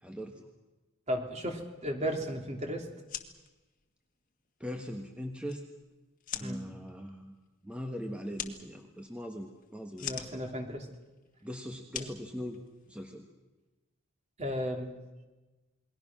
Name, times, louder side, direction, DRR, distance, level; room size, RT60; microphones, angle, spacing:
voice 1, 0.0-0.5 4.6-5.6 6.3-7.3 7.6-10.4 11.4-13.3, equal, 5° right, 3 dB, 1.4 m, -41 dB
voice 2, 1.1-2.9 6.4-6.6 10.0-10.9 12.0-12.1 14.4-14.9, equal, 35° right, 3 dB, 3.1 m, -34 dB
sound 1, 2.9-13.1, left 9 dB, 40° left, 1.7 m, -46 dB
28.5 x 21.5 x 6.1 m, 1.1 s
head